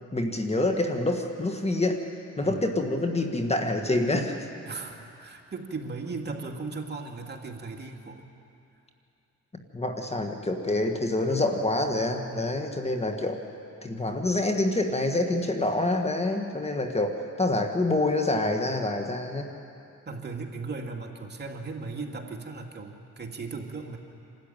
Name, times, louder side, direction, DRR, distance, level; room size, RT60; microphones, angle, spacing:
voice 1, 0.1-2.0 2.4-4.5 9.7-13.4 13.8-19.5, left 2 dB, 20° left, 4 dB, 1.9 m, -27 dB
voice 2, 4.7-8.3 12.3-12.6 20.1-24.0, right 4 dB, 35° right, 2 dB, 2.4 m, -37 dB
27.0 x 13.5 x 9.2 m, 2.6 s
cardioid pair, 90°, 30 cm